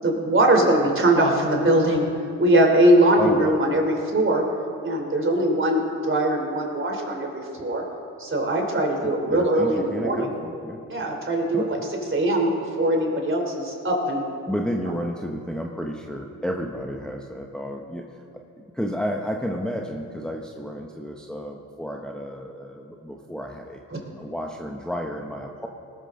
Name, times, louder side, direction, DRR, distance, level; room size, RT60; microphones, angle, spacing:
voice 1, 0.0-2.1 2.4-4.4 4.8-7.8 8.2-10.3 10.9-11.8 12.1-14.2 23.9-24.0, right 1 dB, 35° right, 1 dB, 3.5 m, -21 dB
voice 2, 3.2-3.5 9.0-10.8 11.5-11.9 14.5-18.2 18.6-23.8 24.2-25.7, equal, ahead, 1 dB, 1.1 m, -31 dB
19.0 x 13.0 x 3.8 m, 2.5 s
supercardioid pair, 60°, 37 cm